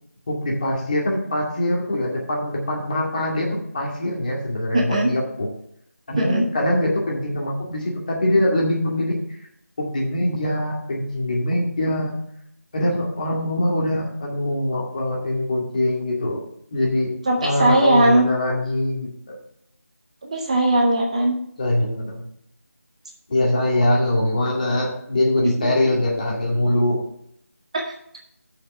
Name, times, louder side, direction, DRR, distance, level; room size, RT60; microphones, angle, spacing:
voice 1, 0.3-5.5 6.1-9.2 9.9-12.2 12.7-16.4 16.7-17.1 17.4-19.4 21.6-22.2 23.3-27.0, left 1 dB, 35° left, -2 dB, 2.1 m, -23 dB
voice 2, 4.7-5.1 6.2-6.5 17.3-18.2 20.2-21.3 27.7-27.9, right 1 dB, 25° right, 1 dB, 0.9 m, -19 dB
7.7 x 5.8 x 6.6 m, 0.72 s
figure-of-eight pair, 170°, 8 cm